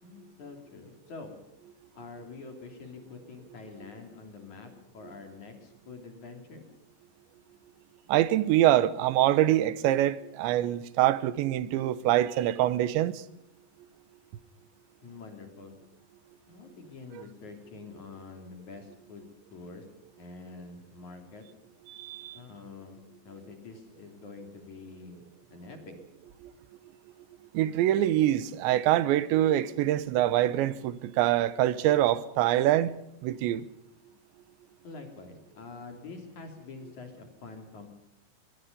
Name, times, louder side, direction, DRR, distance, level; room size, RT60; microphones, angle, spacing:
voice 1, 0.0-1.3 2.0-6.7 15.0-15.8 16.5-19.9 20.2-21.4 22.3-25.9 34.8-37.9, left 4 dB, 45° left, 4.0 m, -46 dB
voice 2, 8.1-13.2 21.9-22.4 27.5-32.9 33.2-33.7, right 13 dB, 90° right, 3.3 m, -25 dB
23.5 x 22.0 x 5.3 m
omnidirectional pair, 5.0 m